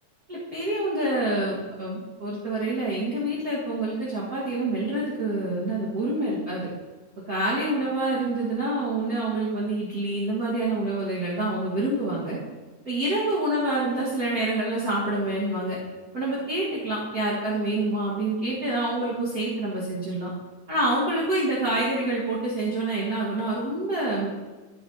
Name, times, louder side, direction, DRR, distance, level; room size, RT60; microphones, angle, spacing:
voice 1, 0.3-6.7 7.3-12.4 12.9-15.8 16.1-20.3 20.7-24.3, right 2 dB, 35° right, -8 dB, 1.8 m, -27 dB
13.5 x 7.0 x 2.9 m, 1.3 s
omnidirectional pair, 3.5 m